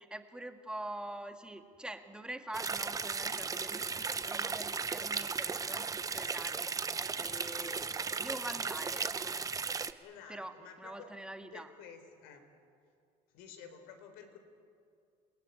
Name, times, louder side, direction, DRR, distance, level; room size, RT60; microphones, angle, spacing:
voice 1, 0.0-9.3 10.3-11.7, right 1 dB, 5° right, 6 dB, 1.8 m, -45 dB
sound 1, 2.5-9.9, right 5 dB, 20° right, 0.9 m, -36 dB
voice 2, 10.0-11.1 11.5-12.5 13.3-14.4, left 7 dB, 80° left, 7 dB, 3.8 m, -52 dB
28.0 x 17.5 x 9.7 m, 2.4 s
cardioid pair, 115°, 17 cm